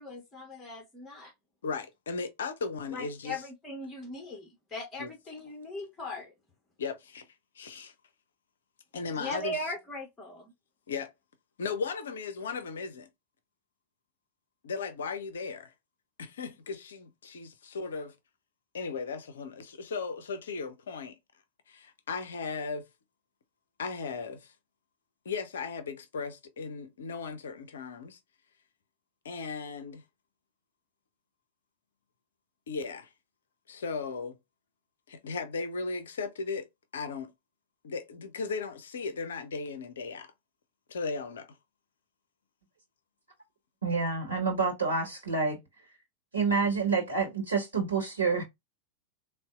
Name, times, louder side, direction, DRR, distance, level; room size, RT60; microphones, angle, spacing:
voice 1, 0.0-1.3 2.9-6.3 9.2-10.5, left 1 dB, 15° left, 1.0 m, -39 dB
voice 2, 1.6-3.4 5.0-5.1 6.8-7.3 7.5-7.9 8.9-9.7 10.9-11.1 11.6-13.1 14.6-15.7 16.2-18.2 18.7-21.2 21.7-22.9 23.8-24.5 25.2-28.2 29.2-30.0 32.7-33.1 33.7-34.4 35.1-36.7 36.9-37.3 37.8-40.3 40.9-41.6, left 4 dB, 65° left, 0.5 m, -36 dB
voice 3, 43.8-45.6 46.3-48.4, right 4 dB, 75° right, 1.0 m, -28 dB
3.9 x 2.0 x 2.3 m
figure-of-eight pair, 90°, 0 cm